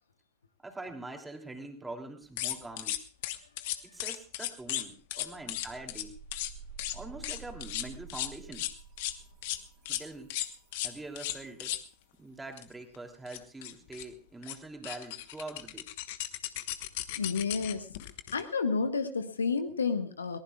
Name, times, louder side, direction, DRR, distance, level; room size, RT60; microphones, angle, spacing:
voice 1, 0.6-3.0 3.8-6.2 6.9-8.7 9.9-10.3 10.8-11.8 12.2-15.9, right 2 dB, 10° right, 3 dB, 3.0 m, -44 dB
sound 1, 2.4-4.8 5.1-6.0 6.3-6.5 6.8-7.0 7.2-9.1 9.4-9.6 9.9-10.0 10.3-11.8 12.6-12.7 12.9-13.0 13.3-14.0 14.4-14.6 14.8-18.4, left 15 dB, 50° left, 1.2 m, -35 dB
sound 2, 4.3-4.4 4.7-11.5, right 6 dB, 35° right, 1.6 m, -51 dB
voice 2, 17.1-17.9 18.3-20.4, left 5 dB, 75° left, 9 dB, 1.3 m, -31 dB
22.5 x 19.0 x 2.4 m, 0.39 s
figure-of-eight pair, 90°, 0 cm